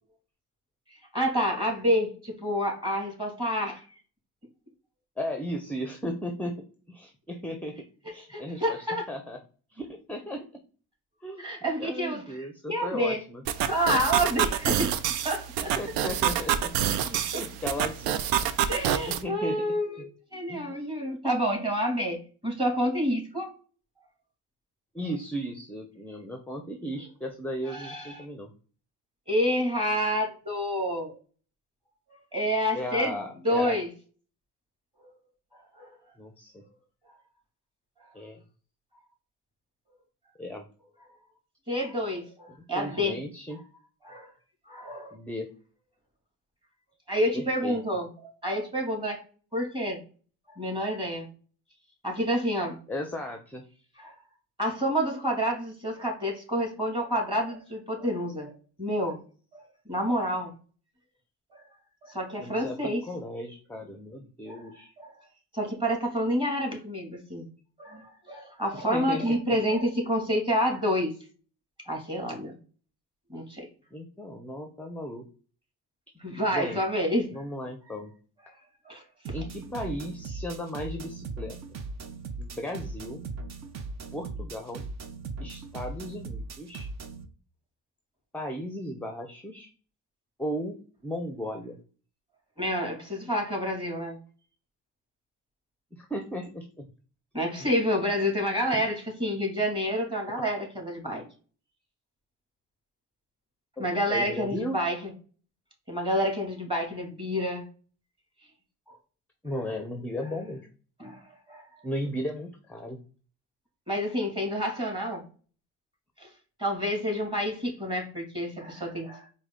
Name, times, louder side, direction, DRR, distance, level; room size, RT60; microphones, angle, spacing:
voice 1, 1.1-3.8 8.3-9.1 11.4-13.2 13.7-14.9 15.2-15.7 17.3-17.4 18.7-20.0 20.3-23.5 27.7-28.2 29.3-31.2 32.3-33.2 33.4-33.9 35.0-35.1 35.8-35.9 41.7-43.2 44.0-44.3 44.7-45.1 47.1-48.1 48.4-49.2 49.5-50.0 50.6-51.3 52.0-52.8 54.0-54.1 54.6-58.5 58.8-59.2 59.5-60.5 61.5-61.6 62.0-63.0 64.5-64.6 65.0-65.1 65.5-67.5 67.8-71.1 71.9-72.6 73.3-73.7 76.2-77.4 78.9-79.0 92.6-94.2 97.3-101.2 103.8-105.1 105.9-107.6 111.0-111.7 113.9-115.2 116.2-116.3 116.6-119.3, equal, 10° right, 0 dB, 2.3 m, -28 dB
voice 2, 5.2-9.4 9.7-10.6 11.2-11.4 11.8-13.4 15.8-18.2 19.1-19.7 20.0-20.1 20.5-20.9 24.9-28.5 32.7-33.8 36.2-36.6 38.1-38.4 40.4-40.7 42.7-43.6 45.1-45.5 47.3-47.8 52.9-53.6 62.4-64.9 68.7-69.4 73.9-75.3 76.5-76.8 77.3-78.1 79.3-81.6 82.4-83.2 84.1-84.9 85.4-86.9 88.3-89.7 90.4-91.8 95.9-96.9 97.6-97.7 98.7-98.8 103.8-103.9 104.1-104.8 109.4-110.7 111.8-113.0, equal, 5° left, 5 dB, 0.7 m, -36 dB
sound 1, 13.5-19.2, right 10 dB, 85° right, 0.5 m, -27 dB
sound 2, 79.2-87.2, right 4 dB, 45° right, 0.7 m, -39 dB
4.7 x 2.3 x 3.7 m, 0.39 s
supercardioid pair, 65°, 39 cm